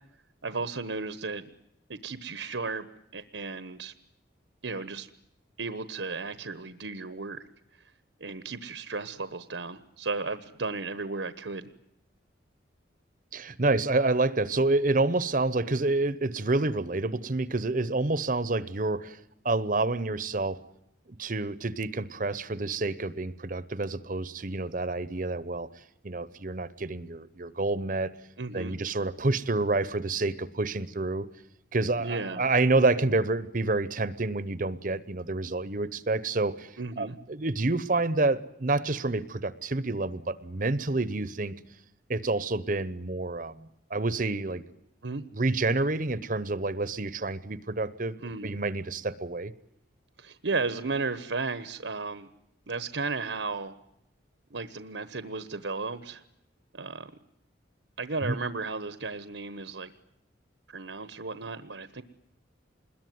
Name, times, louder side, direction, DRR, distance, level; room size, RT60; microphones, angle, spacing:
voice 1, 0.4-1.5 1.9-2.8 3.1-3.9 4.6-5.1 5.6-7.9 8.2-11.7 28.4-28.8 32.0-32.4 36.8-37.1 45.0-45.2 48.2-48.5 50.2-52.3 52.7-53.8 54.5-56.2 56.7-57.1 58.0-59.9 60.7-62.0, right 3 dB, 75° right, 12 dB, 1.2 m, -34 dB
voice 2, 13.3-19.2 19.4-20.6 21.2-25.7 26.0-28.1 28.5-31.3 31.7-41.5 42.1-44.6 45.3-48.2 48.4-49.5 58.2-58.4, right 2 dB, 45° right, 16 dB, 0.9 m, -28 dB
27.0 x 21.5 x 9.5 m, 0.82 s
head